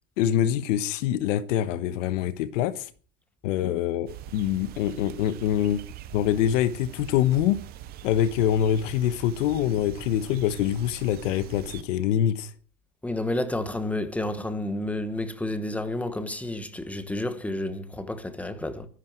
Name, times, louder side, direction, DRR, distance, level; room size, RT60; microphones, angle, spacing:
voice 1, 0.2-2.9 3.4-5.8 6.1-7.6 8.0-12.5, left 10 dB, 50° left, 1.3 m, -25 dB
sound 1, 4.1-11.8, right 12 dB, 20° right, 0.7 m, -43 dB
voice 2, 13.0-18.9, left 1 dB, 5° left, 1.1 m, -30 dB
24.5 x 11.0 x 4.6 m
supercardioid pair, 155°, 49 cm